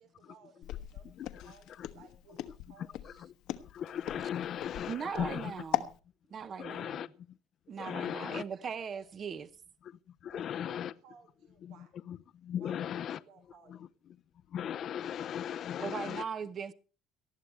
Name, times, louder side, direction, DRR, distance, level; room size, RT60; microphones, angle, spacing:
voice 1, 0.0-3.0 7.8-9.0 10.3-12.0 12.6-13.9, right 6 dB, 85° right, 5.0 m, -60 dB
Walk footsteps, 0.6-6.0, left 13 dB, 70° left, 1.1 m, -38 dB
voice 2, 1.0-1.5 1.8-1.9 3.0-5.6 6.6-7.4 7.8-8.4 9.8-10.9 11.6-11.8 12.1-13.2 13.7-13.9 14.5-16.2, left 9 dB, 40° left, 0.6 m, -38 dB
voice 3, 4.9-5.9 6.3-7.1 7.7-9.5 15.8-16.7, right 6 dB, 30° right, 0.8 m, -39 dB
19.0 x 13.5 x 3.3 m
cardioid pair, 160°, 0 cm